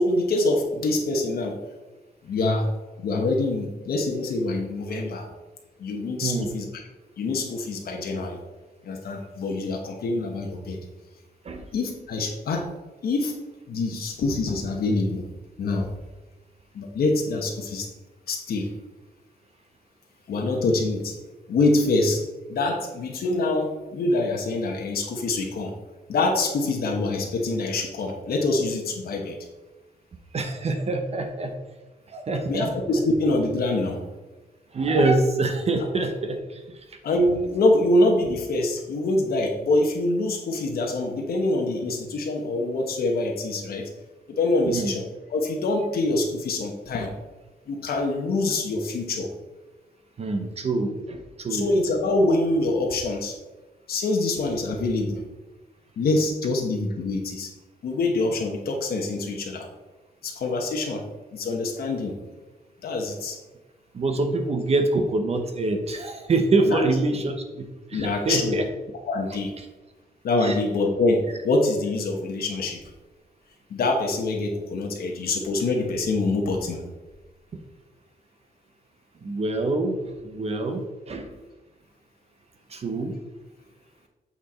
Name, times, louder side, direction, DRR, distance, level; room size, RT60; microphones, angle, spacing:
voice 1, 0.0-1.6 2.2-2.7 3.0-5.3 5.8-6.7 7.2-8.4 8.8-10.8 11.7-12.7 13.0-13.4 13.7-15.3 15.6-15.9 16.7-17.9 18.3-18.7 20.3-21.1 21.5-22.2 22.5-25.7 26.1-29.4 32.5-34.0 37.0-43.9 44.4-45.0 45.3-47.1 47.7-49.3 51.5-53.3 53.9-55.2 56.0-57.5 57.8-59.7 60.2-61.0 61.3-62.2 62.8-63.4 66.7-66.8 67.9-68.6 69.1-69.5 70.2-72.8 73.7-76.8, left 2 dB, 75° left, 1 dB, 1.1 m, -25 dB
voice 2, 30.3-31.5 32.1-32.7 34.7-36.6 44.7-45.0 50.2-51.7 63.9-68.6 69.3-69.7 70.4-70.6 79.2-80.8 81.1-81.3 82.7-83.1, right 2 dB, 40° right, 5 dB, 0.8 m, -25 dB
8.2 x 4.5 x 4.3 m, 1.2 s
wide cardioid pair, 170°, 16 cm